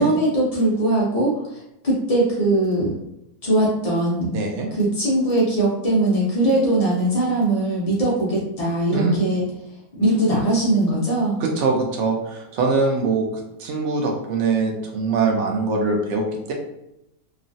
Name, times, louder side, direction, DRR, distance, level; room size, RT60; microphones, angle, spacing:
voice 1, 0.0-3.0 3.4-4.3 4.7-9.4 10.0-11.4, right 1 dB, 65° left, -6 dB, 0.3 m, -20 dB
voice 2, 4.3-4.7 8.9-9.2 11.4-16.5, right 3 dB, 65° right, 1 dB, 0.8 m, -23 dB
3.0 x 2.4 x 2.6 m, 0.83 s
omnidirectional pair, 1.7 m